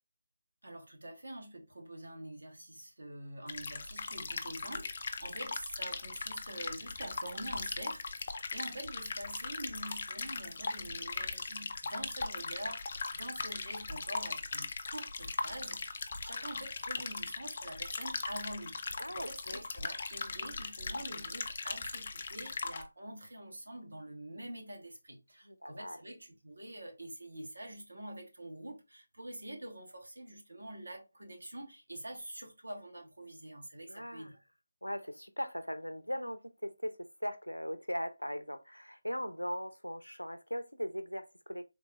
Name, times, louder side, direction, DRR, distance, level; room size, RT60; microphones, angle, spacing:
voice 1, 0.6-34.4, right 1 dB, 65° right, 1.3 m, -46 dB
sound 1, 3.5-22.9, left 4 dB, 35° left, 0.4 m, -39 dB
voice 2, 19.0-19.6 25.5-26.0 33.9-34.3 34.8-41.6, equal, 90° left, 0.6 m, -39 dB
3.8 x 2.9 x 2.4 m
figure-of-eight pair, 155°, 0 cm